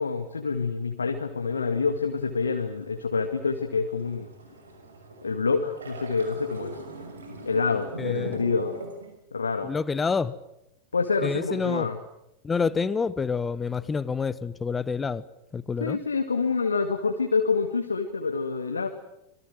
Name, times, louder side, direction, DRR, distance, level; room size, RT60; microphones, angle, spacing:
voice 1, 0.0-4.3 5.2-6.8 7.4-8.7 9.3-9.7 10.9-12.0 15.8-18.9, left 4 dB, 75° left, 5 dB, 2.1 m, -27 dB
sound 1, 1.4-9.1, right 2 dB, 70° right, 6.0 m, -42 dB
voice 2, 8.0-8.4 9.6-10.3 11.2-11.9 12.4-15.2 15.5-16.0, left 5 dB, 15° left, 18 dB, 1.2 m, -28 dB
26.5 x 22.5 x 7.6 m, 0.86 s
figure-of-eight pair, 90°, 0 cm